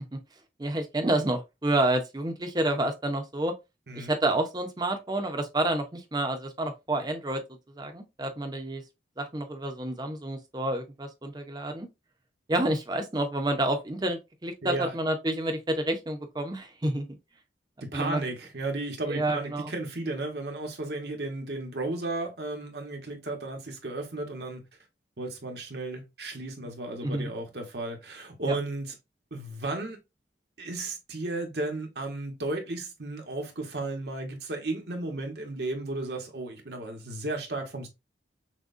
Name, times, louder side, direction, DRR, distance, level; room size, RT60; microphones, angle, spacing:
voice 1, 0.6-3.5 3.9-7.4 7.8-8.8 9.2-11.9 12.5-17.2 17.9-18.2 19.1-19.7 27.0-27.3 28.5-28.6, right 1 dB, 25° right, 0.7 m, -29 dB
voice 2, 14.6-14.9 17.8-24.6 25.2-28.9 29.3-30.0 30.6-37.9, right 2 dB, 70° right, 1.2 m, -34 dB
6.1 x 2.3 x 2.5 m
head